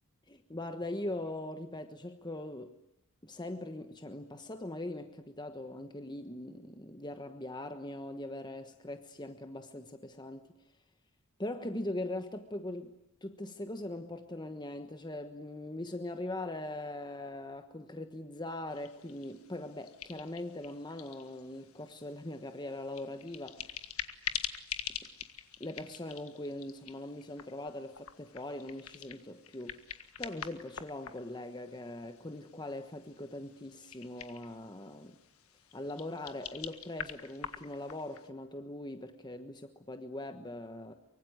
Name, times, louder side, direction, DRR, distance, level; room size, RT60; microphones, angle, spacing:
voice 1, 0.3-2.8 3.2-10.5 11.4-12.9 13.2-23.8 25.6-29.8 30.2-35.2 35.7-40.9, left 1 dB, 20° left, 8 dB, 1.2 m, -41 dB
sound 1, 18.7-38.3, left 9 dB, 75° left, 1.7 m, -46 dB
24.5 x 24.0 x 9.6 m, 0.82 s
head